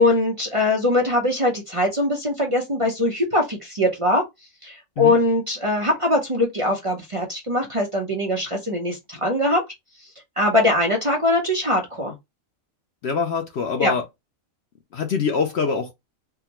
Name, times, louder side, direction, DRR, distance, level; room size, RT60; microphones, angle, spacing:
voice 1, 0.0-4.2 4.6-9.6 10.4-12.1 13.8-13.9, left 1 dB, 30° right, 0.6 m, -21 dB
voice 2, 13.0-14.0 14.9-15.9, left 5 dB, 60° left, 0.7 m, -24 dB
3.6 x 2.1 x 2.9 m
omnidirectional pair, 1.5 m